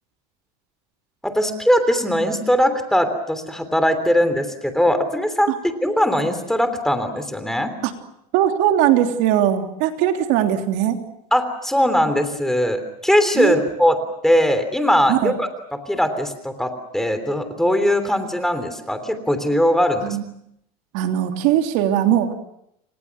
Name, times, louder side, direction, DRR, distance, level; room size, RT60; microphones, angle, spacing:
voice 1, 1.2-5.5 5.8-7.7 11.3-14.0 14.2-20.2, equal, ahead, 9 dB, 3.3 m, -20 dB
voice 2, 8.3-11.0 13.3-13.7 15.1-15.3 20.0-20.2 20.9-22.3, right 11 dB, 70° right, 4 dB, 3.3 m, -20 dB
29.5 x 26.0 x 6.1 m, 0.76 s
supercardioid pair, 135°, 19 cm